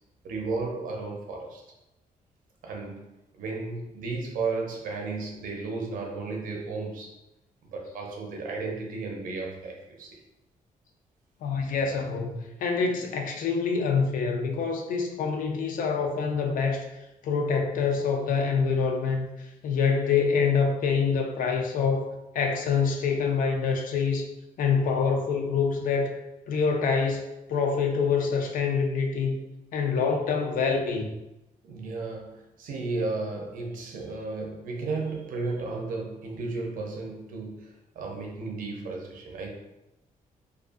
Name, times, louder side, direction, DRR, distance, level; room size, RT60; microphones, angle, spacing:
voice 1, 0.2-1.6 2.6-3.0 3.3-7.1 7.7-10.2 31.7-39.5, right 3 dB, 70° right, 0 dB, 0.5 m, -34 dB
voice 2, 11.4-16.9 17.2-24.3 24.6-26.2 26.5-29.4 29.7-31.2, left 5 dB, 70° left, 3 dB, 0.4 m, -26 dB
2.5 x 2.3 x 2.4 m, 0.94 s
wide cardioid pair, 175°, 14 cm